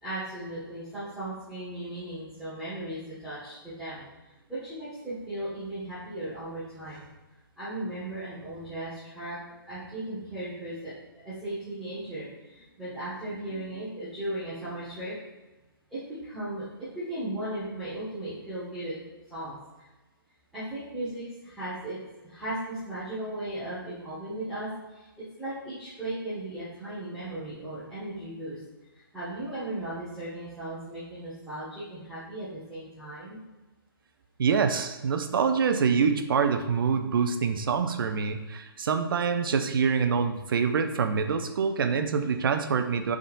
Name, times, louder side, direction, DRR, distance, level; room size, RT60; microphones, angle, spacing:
voice 1, 0.0-4.1 4.5-7.1 7.6-9.4 9.7-15.1 15.9-16.6 16.9-19.0 19.3-19.6 20.5-25.0 25.4-28.6 29.1-33.4, right 1 dB, ahead, -17 dB, 1.4 m, -36 dB
voice 2, 34.4-43.2, right 6 dB, 65° right, 7 dB, 0.5 m, -25 dB
5.4 x 3.6 x 2.5 m, 1.1 s
hypercardioid pair, 155°, 13 cm